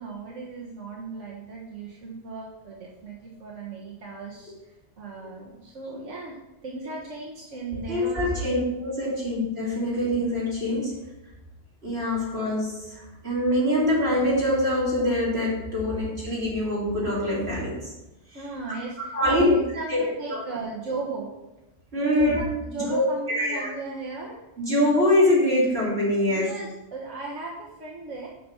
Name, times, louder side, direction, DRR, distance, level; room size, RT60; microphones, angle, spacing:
voice 1, 0.0-6.3 6.6-8.5 18.3-21.3 22.1-24.4 26.3-28.3, right 3 dB, 85° right, -4 dB, 1.7 m, -36 dB
voice 2, 7.7-10.9 11.8-17.9 19.0-19.5 19.9-20.0 20.3-20.4 21.9-22.4 22.8-23.0 23.3-23.7 24.6-26.5, left 1 dB, 55° right, -6 dB, 4.1 m, -24 dB
9.2 x 5.9 x 5.7 m, 0.95 s
omnidirectional pair, 1.2 m